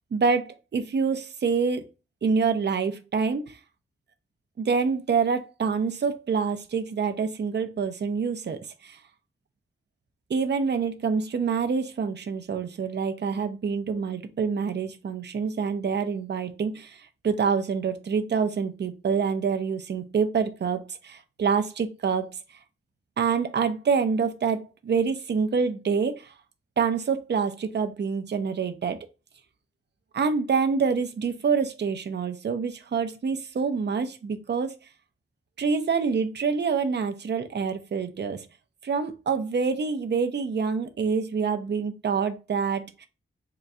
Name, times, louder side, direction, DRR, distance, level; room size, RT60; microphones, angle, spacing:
voice 1, 0.1-1.8 2.2-3.6 4.6-9.0 10.3-17.0 17.2-22.3 23.2-26.3 26.8-29.0 30.1-34.7 35.6-38.5 38.8-43.1, right 5 dB, 55° right, 0.6 m, -26 dB
3.8 x 2.3 x 4.1 m
wide cardioid pair, 85°, 21 cm